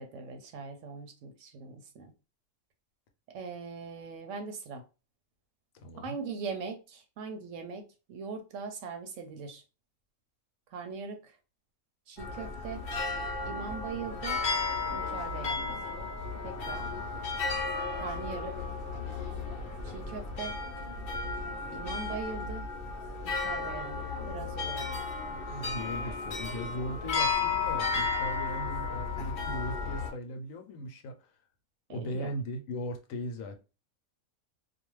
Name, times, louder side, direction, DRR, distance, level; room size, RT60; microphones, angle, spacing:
voice 1, 0.0-2.1 3.3-4.8 6.0-9.6 10.7-11.4 12.1-12.8 13.4-14.4 14.9-15.8 16.4-16.9 17.9-18.7 19.8-20.6 21.7-22.6 23.2-25.1 31.9-32.3, right 5 dB, 70° right, 0.9 m, -41 dB
voice 2, 5.7-6.1 25.3-31.4 31.9-33.6, equal, 75° left, 1.0 m, -38 dB
sound 1, 12.2-30.1, left 4 dB, 55° left, 0.7 m, -34 dB
2.5 x 2.3 x 3.0 m
omnidirectional pair, 1.4 m